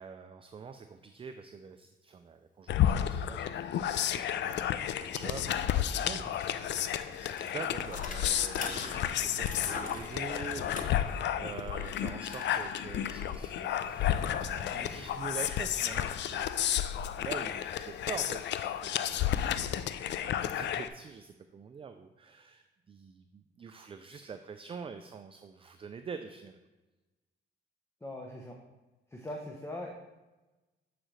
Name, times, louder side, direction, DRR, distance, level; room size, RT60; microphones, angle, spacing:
voice 1, 0.0-16.6 17.2-26.6, right 5 dB, 30° right, 8 dB, 0.4 m, -45 dB
sound 1, 2.7-20.9, left 10 dB, 65° left, 0.4 m, -32 dB
Bicycle, 3.8-3.9 4.2-17.1, left 3 dB, 40° left, 1.0 m, -47 dB
sound 2, 13.6-19.4, left 1 dB, 85° left, 1.1 m, -56 dB
voice 2, 28.0-28.6 29.1-29.9, left 1 dB, 15° left, 0 dB, 0.8 m, -40 dB
8.7 x 5.0 x 3.2 m, 1.1 s
cardioid pair, 90°, 20 cm